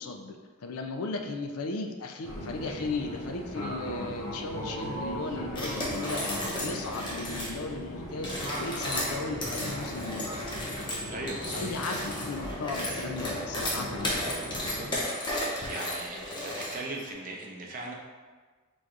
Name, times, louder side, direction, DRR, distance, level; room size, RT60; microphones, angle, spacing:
voice 1, 0.0-8.3 8.6-10.3 11.0-14.3, left 3 dB, 85° left, 4 dB, 0.5 m, -36 dB
Fixed-wing aircraft airplane, 2.2-14.9, equal, 60° left, 0.9 m, -38 dB
sound 1, 5.6-7.6 8.1-17.0, left 1 dB, 20° left, 0.7 m, -34 dB
voice 2, 11.1-11.6 14.5-14.9 15.3-17.9, right 2 dB, 40° right, -1 dB, 0.6 m, -39 dB
4.6 x 4.0 x 2.5 m, 1.4 s
head